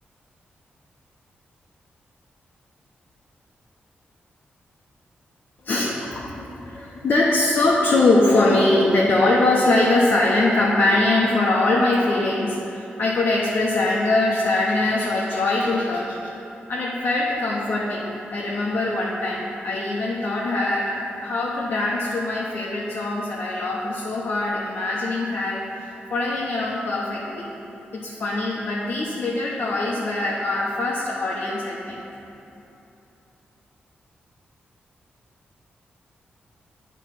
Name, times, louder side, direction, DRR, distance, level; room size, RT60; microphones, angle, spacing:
voice 1, 5.6-16.3 16.7-25.6 26.1-27.5 27.9-32.0, left 2 dB, 55° left, -4 dB, 0.8 m, -22 dB
8.9 x 3.0 x 6.0 m, 2.9 s
cardioid pair, 75°, 4 cm